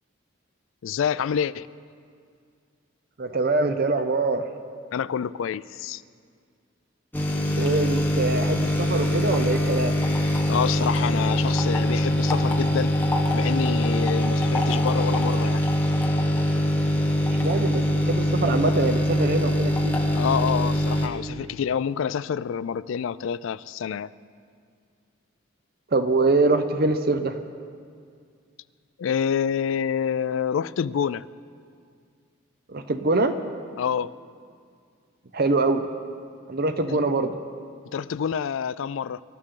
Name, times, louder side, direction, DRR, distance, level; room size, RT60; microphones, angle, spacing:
voice 1, 0.8-1.7 4.9-6.0 10.5-12.9 13.3-15.6 20.1-24.1 29.0-31.2 33.8-34.1 36.9-37.0 37.9-39.2, left 7 dB, 70° left, 0.3 m, -27 dB
voice 2, 3.2-4.5 7.5-9.9 17.4-20.0 25.9-27.4 32.7-33.3 35.3-35.9 36.5-37.4, right 3 dB, 45° right, 0.6 m, -24 dB
sound 1, 7.1-21.1, equal, 10° left, 1.3 m, -23 dB
25.0 x 13.0 x 3.8 m
head